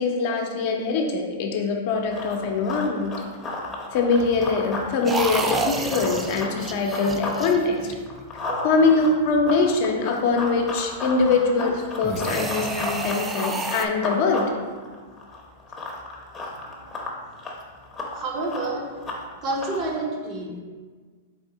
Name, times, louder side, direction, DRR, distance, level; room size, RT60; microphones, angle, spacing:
voice 1, 0.0-3.1 3.9-7.8 8.6-14.5, left 4 dB, 55° left, 2 dB, 0.6 m, -23 dB
Run, 1.9-7.4 7.7-20.0, left 2 dB, 15° left, 0.7 m, -35 dB
sound 1, 5.0-8.2 12.0-13.9, right 3 dB, 15° right, 0.3 m, -29 dB
voice 2, 18.1-19.0 19.4-20.6, right 2 dB, 35° right, 0 dB, 0.7 m, -30 dB
4.2 x 2.6 x 3.8 m, 1.5 s
hypercardioid pair, 120°, 0 cm